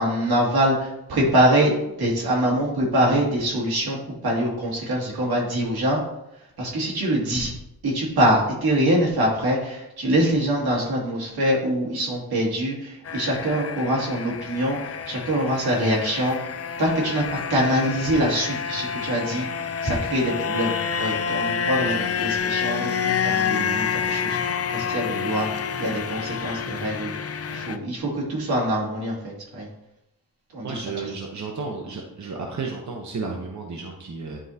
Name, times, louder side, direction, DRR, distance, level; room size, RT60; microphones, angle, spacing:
voice 1, 0.0-1.7 2.0-6.0 6.6-7.5 7.8-16.4 16.8-19.5 19.8-27.1 27.5-29.7 30.5-30.7, right 1 dB, 80° right, -3 dB, 2.3 m, -24 dB
sound 1, 13.1-27.8, left 7 dB, 40° left, 0.5 m, -28 dB
voice 2, 30.6-34.4, right 4 dB, 50° right, 1 dB, 0.9 m, -32 dB
9.9 x 4.6 x 2.8 m, 0.85 s
wide cardioid pair, 100°, 37 cm